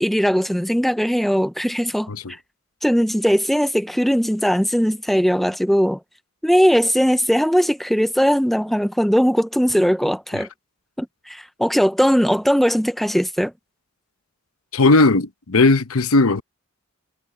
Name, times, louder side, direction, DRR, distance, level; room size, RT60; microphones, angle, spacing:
voice 1, 0.0-2.1 2.8-6.0 6.4-10.5 11.0-13.5, equal, ahead, 0.7 m, -19 dB
voice 2, 14.7-16.4, left 3 dB, 90° left, 0.9 m, -17 dB
head